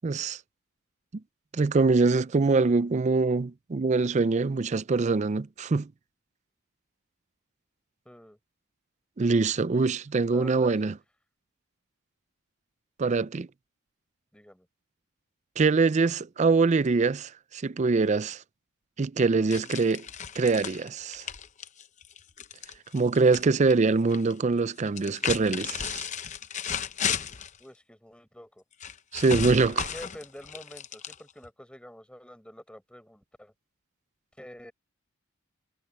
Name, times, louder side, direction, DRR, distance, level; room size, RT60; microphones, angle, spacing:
voice 1, 0.0-0.4 1.5-5.9 9.2-10.9 13.0-13.5 15.6-18.4 19.0-20.1 20.4-21.2 22.9-26.1 29.1-29.9, right 4 dB, 35° right, 0.4 m, -24 dB
voice 2, 8.0-8.4 10.3-10.9 14.3-14.7 27.6-28.6 29.7-33.5 34.4-34.7, equal, 5° left, 5.2 m, -47 dB
sound 1, 19.5-23.4 23.7-24.3 24.9-27.6 28.8-31.5, left 7 dB, 35° left, 0.7 m, -34 dB
head